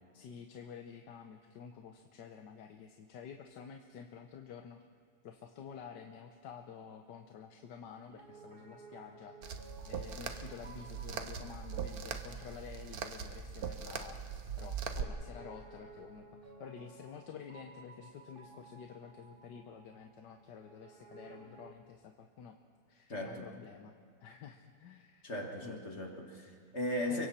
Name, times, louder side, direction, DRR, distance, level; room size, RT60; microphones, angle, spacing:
voice 1, 0.1-4.8 5.2-22.6 22.9-23.9 24.2-25.3 25.6-25.8 27.1-27.3, left 7 dB, 70° left, 5 dB, 1.5 m, -50 dB
Piano, 8.1-21.8, right 3 dB, 30° right, 1.6 m, -56 dB
sound 1, 9.4-15.0, right 7 dB, 60° right, 1.4 m, -41 dB
voice 2, 23.1-23.5 25.2-27.3, left 1 dB, 40° left, 1 dB, 2.1 m, -37 dB
29.5 x 23.5 x 4.3 m, 2.1 s
omnidirectional pair, 2.0 m